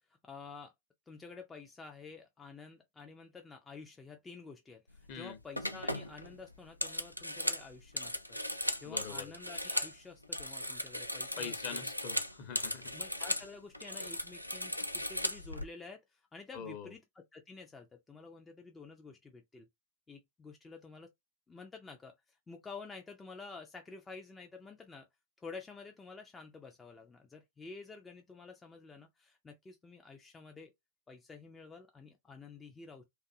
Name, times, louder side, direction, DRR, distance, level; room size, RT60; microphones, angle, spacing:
voice 1, 0.1-0.7 1.1-8.4 8.8-11.8 12.9-19.7 20.1-21.1 21.5-25.1 25.4-30.7 31.1-33.0, left 4 dB, 15° left, 0.4 m, -50 dB
sound 1, 4.9-5.1 5.6-10.0 10.2-13.5 13.7-15.6, left 1 dB, 90° left, 0.3 m, -37 dB
voice 2, 8.8-9.3 11.4-12.9 16.5-16.9, left 7 dB, 45° left, 0.8 m, -43 dB
2.5 x 2.3 x 2.6 m
figure-of-eight pair, 90°, 0 cm